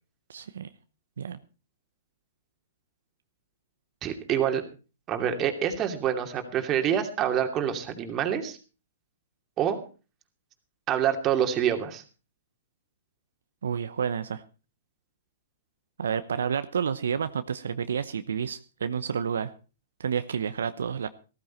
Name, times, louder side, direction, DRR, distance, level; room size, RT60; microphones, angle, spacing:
voice 1, 0.3-0.7 1.2-1.4 13.6-14.4 16.0-19.5 20.0-21.1, right 7 dB, 75° right, 11 dB, 0.8 m, -30 dB
voice 2, 4.0-4.6 5.1-8.6 9.6-9.8 10.9-12.0, right 9 dB, 25° right, 6 dB, 2.6 m, -26 dB
15.0 x 14.0 x 4.5 m, 0.35 s
hypercardioid pair, 130°, 0 cm